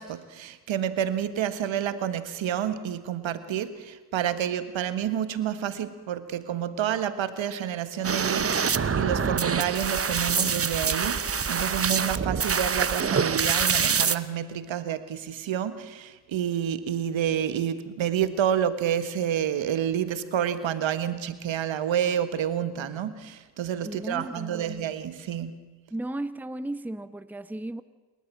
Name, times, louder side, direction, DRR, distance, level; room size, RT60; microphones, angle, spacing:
voice 1, 0.0-25.5, right 9 dB, 65° right, 1.6 m, -29 dB
sound 1, 8.0-14.1, right 6 dB, 30° right, 1.0 m, -25 dB
voice 2, 23.8-24.8 25.9-27.8, right 1 dB, 5° right, 0.9 m, -35 dB
28.5 x 13.0 x 7.4 m
supercardioid pair, 50°, 49 cm